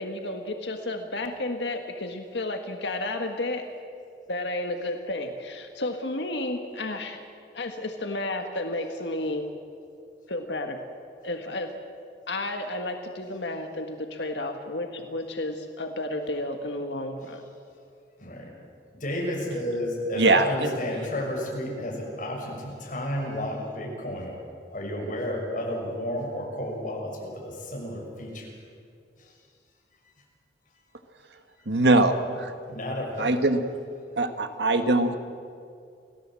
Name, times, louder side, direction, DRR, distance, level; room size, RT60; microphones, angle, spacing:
voice 1, 0.0-3.6 4.3-7.2 7.5-9.5 10.3-10.8 11.2-11.7 12.3-17.5, left 2 dB, 75° left, 5 dB, 1.7 m, -32 dB
voice 2, 18.2-18.5 18.9-24.4 24.7-28.5 29.2-29.3 31.9-32.0 32.7-33.4, left 1 dB, 45° left, -1 dB, 6.3 m, -32 dB
voice 3, 20.2-20.7 31.7-32.5 33.2-33.6 34.2-35.2, right 2 dB, 70° right, 8 dB, 1.6 m, -22 dB
28.5 x 17.5 x 7.7 m, 2.4 s
head